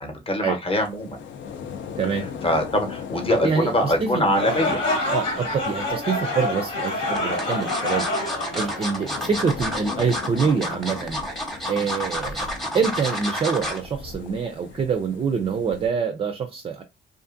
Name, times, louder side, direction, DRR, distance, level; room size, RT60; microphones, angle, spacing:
voice 1, 0.0-1.2 2.4-4.8 11.8-11.9, left 1 dB, 30° left, 0.8 m, -23 dB
sound 1, 0.7-15.9, left 6 dB, 70° left, 0.5 m, -39 dB
voice 2, 2.0-2.3 3.3-4.6 5.1-11.2 11.7-16.8, right 6 dB, 30° right, 0.3 m, -26 dB
sound 2, 4.3-9.5, left 2 dB, 90° left, 1.5 m, -27 dB
sound 3, 5.9-6.4 7.1-13.9 14.3-14.5 14.8-14.9, left 1 dB, ahead, 0.8 m, -30 dB
2.5 x 2.5 x 2.4 m
cardioid pair, 90°, 20 cm